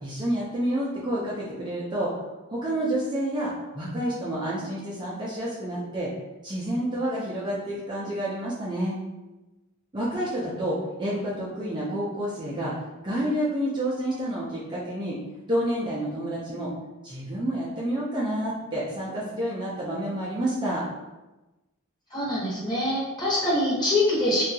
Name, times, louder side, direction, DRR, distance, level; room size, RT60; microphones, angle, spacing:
voice 1, 0.0-2.1 2.5-6.1 6.4-9.0 9.9-12.7 13.0-15.2 15.5-16.7 17.0-20.8, right 1 dB, 20° right, -7 dB, 0.4 m, -29 dB
voice 2, 22.1-24.4, left 1 dB, 20° left, -8 dB, 1.0 m, -24 dB
2.7 x 2.3 x 2.7 m, 1.1 s
head